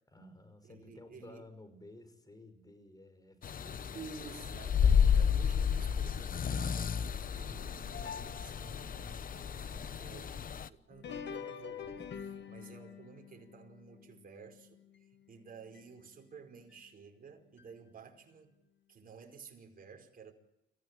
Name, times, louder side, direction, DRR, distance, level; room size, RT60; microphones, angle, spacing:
voice 1, 0.1-4.0, left 1 dB, 20° left, 10 dB, 5.5 m, -54 dB
voice 2, 0.6-1.5 3.9-18.5 18.9-20.3, right 5 dB, 45° right, 4 dB, 5.1 m, -53 dB
sound 1, 3.4-10.7, left 7 dB, 45° left, 1.0 m, -31 dB
sound 2, 7.9-9.1 10.9-15.3 15.7-15.8 16.7-16.8 17.6-17.7, left 7 dB, 65° left, 2.4 m, -46 dB
26.5 x 15.5 x 9.1 m, 0.85 s
cardioid pair, 90°, 20 cm